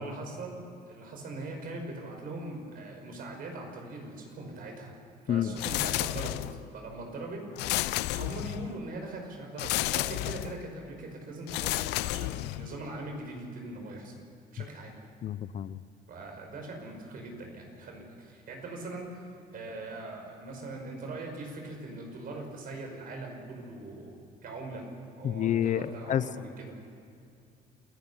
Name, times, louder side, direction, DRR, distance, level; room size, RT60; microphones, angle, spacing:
voice 1, 0.0-5.0 5.2-6.4 6.7-7.4 8.1-14.1 14.5-15.0 16.1-24.1 24.4-24.9 25.2-26.8, right 2 dB, 60° right, 2 dB, 5.7 m, -41 dB
sound 1, 5.6-6.7 7.6-8.8 9.6-10.6 11.5-12.8, left 18 dB, 90° left, 0.5 m, -31 dB
voice 2, 15.2-15.8 25.2-26.2, left 10 dB, 50° left, 15 dB, 0.6 m, -28 dB
28.0 x 16.5 x 5.6 m, 2.5 s
cardioid pair, 110°, 17 cm